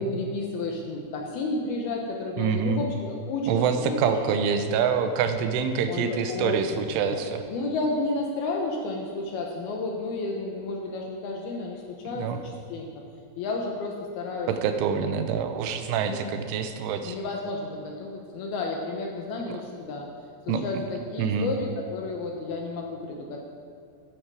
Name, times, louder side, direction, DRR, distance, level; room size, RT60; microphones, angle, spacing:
voice 1, 0.0-4.2 5.9-12.9 13.4-14.5 16.0-16.3 17.0-20.1 20.5-23.4, left 2 dB, 70° left, 1 dB, 2.5 m, -32 dB
voice 2, 2.4-2.8 3.5-7.4 12.1-12.4 14.5-17.2 19.5-19.6 20.5-20.6 21.2-21.5, right 6 dB, 90° right, 7 dB, 3.3 m, -26 dB
12.5 x 11.5 x 4.8 m, 2.2 s
omnidirectional pair, 5.4 m